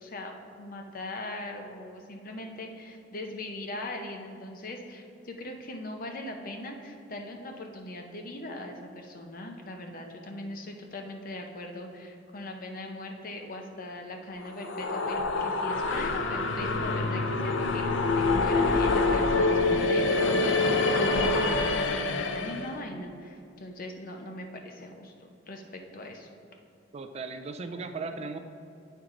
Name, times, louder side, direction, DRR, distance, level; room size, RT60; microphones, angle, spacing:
voice 1, 0.0-25.1 25.5-26.3, left 1 dB, 50° left, 3 dB, 0.7 m, -40 dB
sound 1, 14.4-22.7, left 3 dB, 90° left, 0.5 m, -26 dB
voice 2, 26.9-28.4, right 3 dB, 35° right, 7 dB, 0.4 m, -37 dB
8.5 x 4.5 x 3.8 m, 2.6 s
head